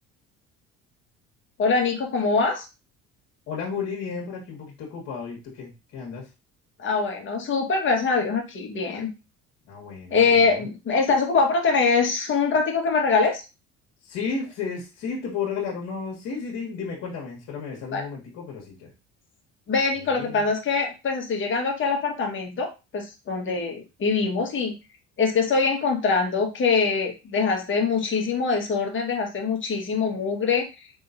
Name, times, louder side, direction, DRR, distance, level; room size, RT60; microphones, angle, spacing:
voice 1, 1.6-2.6 6.8-9.1 10.1-13.4 17.9-18.0 19.7-24.7 25.2-30.7, left 4 dB, 45° left, 2 dB, 1.5 m, -23 dB
voice 2, 3.5-6.3 9.7-10.6 14.0-18.9 20.1-20.4, left 5 dB, 70° left, -3 dB, 1.5 m, -33 dB
4.4 x 3.6 x 2.6 m, 0.27 s
cardioid pair, 100°, 29 cm